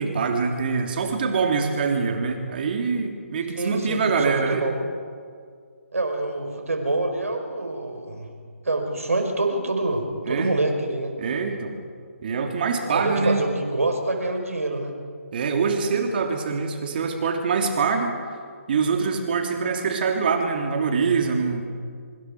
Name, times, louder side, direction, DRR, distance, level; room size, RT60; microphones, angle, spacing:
voice 1, 0.0-4.6 10.3-10.5 11.2-11.8 12.2-13.4 15.3-18.2 18.7-21.6, right 5 dB, 40° right, 3 dB, 3.2 m, -24 dB
voice 2, 3.5-4.7 5.9-8.3 8.6-11.1 12.9-14.9, right 2 dB, 75° right, 4 dB, 4.7 m, -26 dB
25.0 x 25.0 x 4.9 m, 2.1 s
figure-of-eight pair, 145°, 8 cm